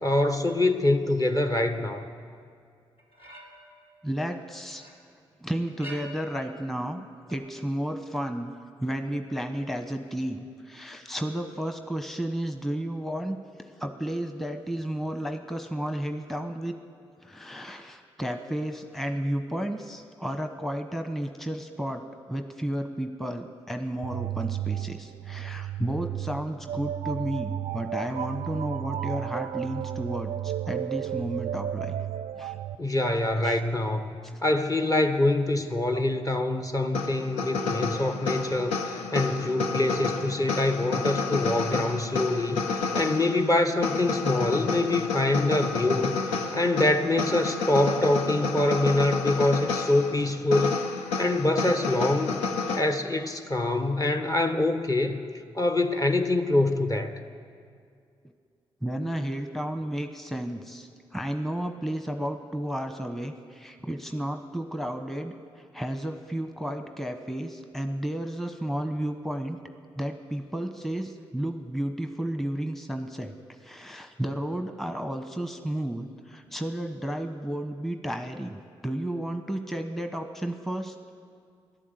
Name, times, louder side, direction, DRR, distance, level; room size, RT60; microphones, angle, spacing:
voice 1, 0.0-2.1 32.8-34.1 34.4-50.8 51.2-52.4 52.7-55.2 55.5-57.2, left 2 dB, 30° left, 7 dB, 1.3 m, -25 dB
sound 1, 3.0-3.8 4.2-5.0 5.7-6.4 7.3-7.4, right 1 dB, 55° left, 4.6 m, -46 dB
voice 2, 4.0-4.9 5.4-8.5 8.8-13.4 13.8-16.7 17.2-22.0 22.3-32.0 32.4-32.6 33.4-33.6 34.2-34.3 58.8-69.6 70.0-73.3 73.6-80.9, right 1 dB, ahead, 6 dB, 1.1 m, -32 dB
sound 2, 24.0-32.7, right 11 dB, 65° right, 0.4 m, -33 dB
sound 3, 36.9-52.8, left 4 dB, 85° left, 0.8 m, -30 dB
13.5 x 11.5 x 8.1 m, 2.3 s
supercardioid pair, 45°, 11 cm